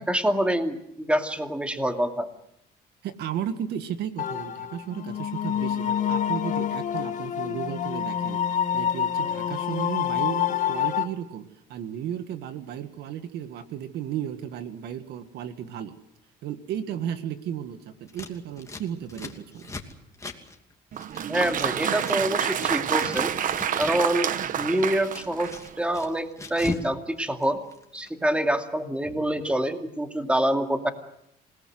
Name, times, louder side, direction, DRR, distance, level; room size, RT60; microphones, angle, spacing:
voice 1, 0.0-2.3 21.3-23.4 23.8-25.5 25.8-27.6 27.9-30.9, right 1 dB, 5° right, 5 dB, 2.5 m, -26 dB
voice 2, 3.0-16.0 16.4-19.7, right 9 dB, 75° right, 9 dB, 1.8 m, -34 dB
sound 1, 4.2-11.0, left 9 dB, 45° left, 1.8 m, -27 dB
Scissors, 18.1-22.2 22.4-24.0 24.3-26.9 27.2-28.1, left 3 dB, 20° left, 2.7 m, -39 dB
Applause, 20.9-25.8, right 9 dB, 50° right, 1.1 m, -28 dB
28.0 x 18.5 x 7.9 m, 0.77 s
cardioid pair, 110°, 17 cm